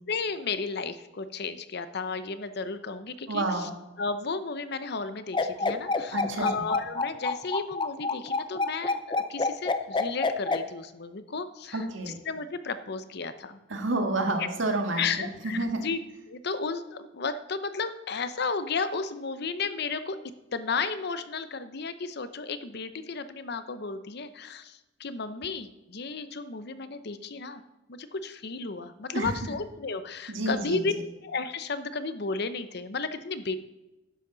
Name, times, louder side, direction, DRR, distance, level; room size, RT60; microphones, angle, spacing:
voice 1, 0.1-3.7 4.0-11.8 12.3-13.6 15.0-16.0 16.3-20.2 20.5-27.6 27.9-30.9 31.2-33.6, left 4 dB, 55° left, 11 dB, 0.8 m, -33 dB
voice 2, 3.3-3.7 6.1-6.7 11.7-12.2 13.7-15.1 15.4-15.8 29.1-29.3 30.3-31.0, right 2 dB, 75° right, 4 dB, 1.8 m, -29 dB
sound 1, 5.3-10.6, left 3 dB, 25° left, 0.6 m, -27 dB
12.5 x 10.0 x 4.0 m, 0.99 s
head